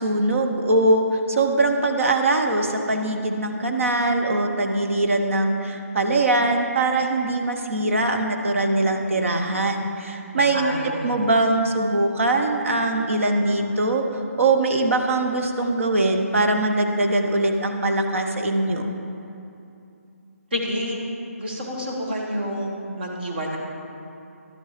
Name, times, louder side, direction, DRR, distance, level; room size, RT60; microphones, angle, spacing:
voice 1, 0.0-10.7 11.0-14.0 14.4-18.9, right 2 dB, 55° right, 4 dB, 0.8 m, -22 dB
voice 2, 10.4-11.2 20.5-21.0 21.4-23.6, equal, 40° right, -1 dB, 1.4 m, -29 dB
11.5 x 5.6 x 4.9 m, 2.7 s
hypercardioid pair, 180°, 8 cm